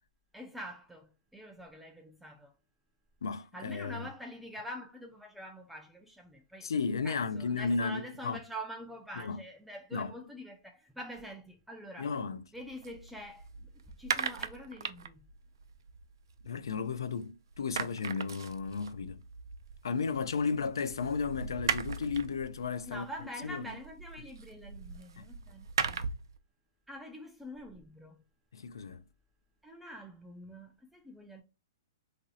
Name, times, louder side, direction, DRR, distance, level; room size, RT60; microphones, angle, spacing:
voice 1, 0.3-2.5 3.5-6.7 7.0-12.1 12.5-13.7 14.0-15.3 22.9-26.0 26.9-28.2 29.6-31.4, equal, ahead, 0.3 m, -45 dB
voice 2, 3.2-4.1 6.6-8.4 9.2-9.4 9.9-10.1 12.0-12.4 16.4-19.2 19.8-23.1 23.4-23.6 25.2-25.3 28.5-29.0, left 5 dB, 90° left, 0.4 m, -34 dB
sound 1, 12.6-17.2 17.5-26.4, right 6 dB, 80° right, 0.4 m, -39 dB
3.0 x 2.5 x 2.7 m
hypercardioid pair, 160°, 2 cm